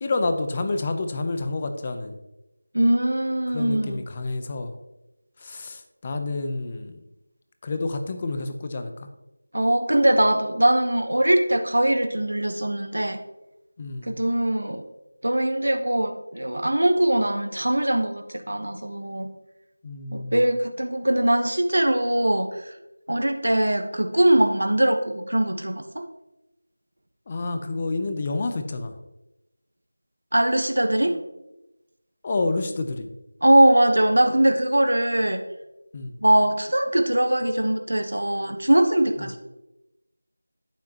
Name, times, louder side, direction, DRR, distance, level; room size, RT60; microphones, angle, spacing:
voice 1, 0.0-2.2 3.5-4.7 5.4-7.0 7.6-9.1 13.8-14.1 19.8-20.4 27.3-29.0 31.0-31.2 32.2-33.1 35.9-36.1, left 3 dB, 25° left, 7 dB, 0.8 m, -29 dB
voice 2, 2.7-4.0 9.5-13.2 14.0-14.8 15.2-19.3 20.1-22.5 23.1-26.0 30.3-31.2 33.4-35.4 36.2-39.4, right 1 dB, 80° right, 6 dB, 1.2 m, -21 dB
11.5 x 8.5 x 3.0 m, 0.96 s
figure-of-eight pair, 170°, 0 cm